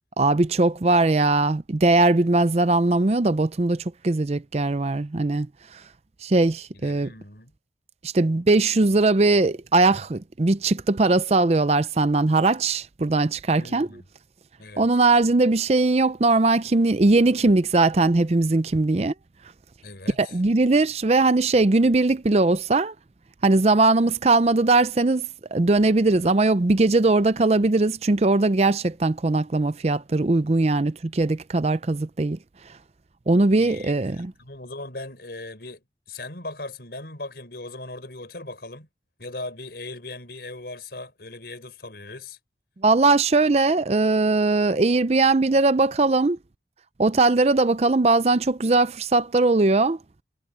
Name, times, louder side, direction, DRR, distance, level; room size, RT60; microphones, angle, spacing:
voice 1, 0.2-5.5 6.2-7.1 8.1-13.9 14.8-19.1 20.2-22.9 23.4-32.4 33.3-34.3 42.8-46.4 47.0-50.0, right 3 dB, 35° right, 0.5 m, -20 dB
voice 2, 6.7-7.5 13.5-14.1 14.6-14.9 19.8-20.4 33.5-38.9 39.2-42.4, left 2 dB, 65° left, 4.6 m, -39 dB
head